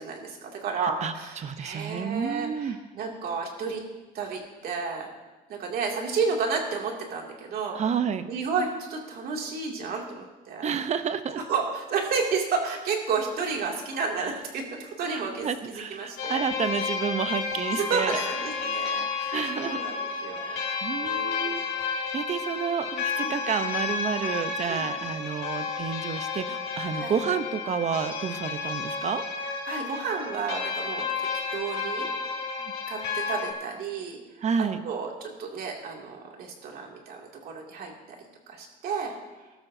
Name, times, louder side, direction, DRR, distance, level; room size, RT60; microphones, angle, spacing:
voice 1, 0.0-3.8 4.1-5.1 5.5-7.8 8.3-10.7 11.3-16.4 17.7-19.9 20.2-20.6 21.0-21.5 23.2-23.3 24.7-24.9 26.9-27.1 29.7-32.1 32.9-34.2 34.6-37.9 38.5-39.1, right 5 dB, 65° right, 0 dB, 2.6 m, -31 dB
voice 2, 1.0-2.8 7.7-8.3 10.6-11.4 15.1-18.2 19.3-19.8 20.4-29.2 34.4-34.8, right 7 dB, 45° right, 11 dB, 0.8 m, -30 dB
sound 1, 16.2-33.5, left 5 dB, 80° left, 2.7 m, -31 dB
20.0 x 12.5 x 2.8 m, 1.2 s
cardioid pair, 110°, 17 cm